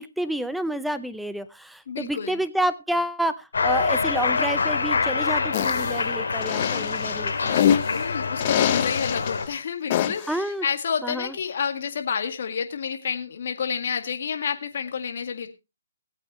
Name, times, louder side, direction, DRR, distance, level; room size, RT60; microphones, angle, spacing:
voice 1, 0.0-7.6 10.3-10.7 11.0-11.3, right 1 dB, ahead, 13 dB, 0.6 m, -29 dB
voice 2, 1.9-2.4 7.9-15.5, left 7 dB, 60° left, 5 dB, 2.0 m, -29 dB
Cheering, 3.5-9.5, left 4 dB, 85° left, 2.5 m, -25 dB
sound 1, 5.5-5.9 6.4-8.0 8.4-9.3 9.9-10.3, left 10 dB, 35° left, 0.9 m, -24 dB
19.0 x 8.4 x 3.1 m, 0.26 s
hypercardioid pair, 155°, 0 cm